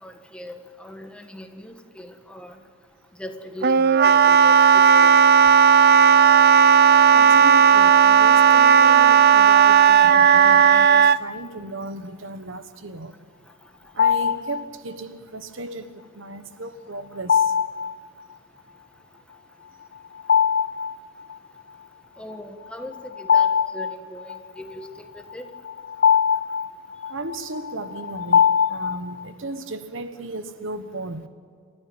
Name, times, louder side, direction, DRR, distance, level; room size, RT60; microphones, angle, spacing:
voice 1, 0.0-2.6 3.2-5.1 22.2-24.9 25.1-25.5, left 1 dB, 5° left, 1.6 m, -39 dB
Wind instrument woodwind instrument, 3.6-11.2, right 7 dB, 50° right, 0.5 m, -14 dB
voice 2, 7.1-13.1 13.9-17.5 27.1-31.3, right 2 dB, 65° right, 1.3 m, -35 dB
sound 1, 14.0-14.6 17.3-17.9 20.2-20.9 21.3-21.4 22.8-24.4 25.3-29.2, left 7 dB, 50° left, 0.8 m, -21 dB
29.0 x 13.5 x 8.9 m
head